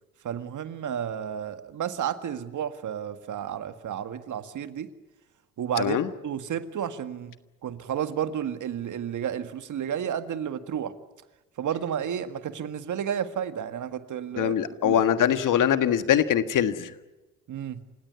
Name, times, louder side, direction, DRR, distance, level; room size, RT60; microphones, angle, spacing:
voice 1, 0.2-4.9 5.6-7.3 7.6-10.9 11.6-15.0 17.5-17.8, right 9 dB, 55° right, 10 dB, 1.9 m, -32 dB
voice 2, 5.8-6.1 14.4-16.9, left 9 dB, 55° left, 11 dB, 1.6 m, -23 dB
28.5 x 17.0 x 9.6 m, 1.1 s
supercardioid pair, 70°, 37 cm